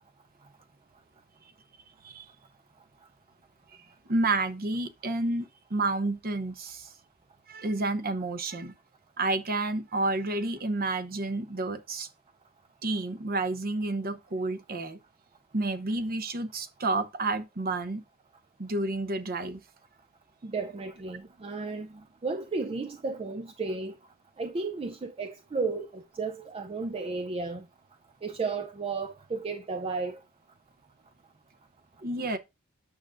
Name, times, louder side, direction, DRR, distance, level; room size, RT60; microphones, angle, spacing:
voice 1, 4.1-6.9 7.5-8.7 9.2-12.1 12.8-15.0 15.5-18.0 18.6-19.6 32.0-32.4, right 2 dB, 45° right, 0.8 m, -30 dB
voice 2, 20.4-21.9 22.2-23.9 24.4-27.6 28.2-30.2, right 4 dB, 25° right, 0.4 m, -33 dB
9.0 x 6.3 x 2.5 m
head